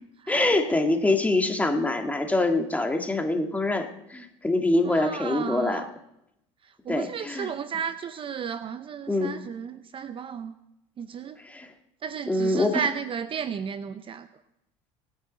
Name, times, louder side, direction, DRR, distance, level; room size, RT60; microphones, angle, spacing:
voice 1, 0.3-5.9 6.9-7.5 9.1-9.3 11.4-11.7 12.3-12.8, left 2 dB, 10° left, 5 dB, 1.9 m, -25 dB
voice 2, 4.9-5.9 6.9-10.5 11.0-11.4 12.0-14.3, right 7 dB, 35° right, 12 dB, 0.7 m, -33 dB
25.5 x 9.7 x 4.1 m, 0.82 s
supercardioid pair, 100°, 15 cm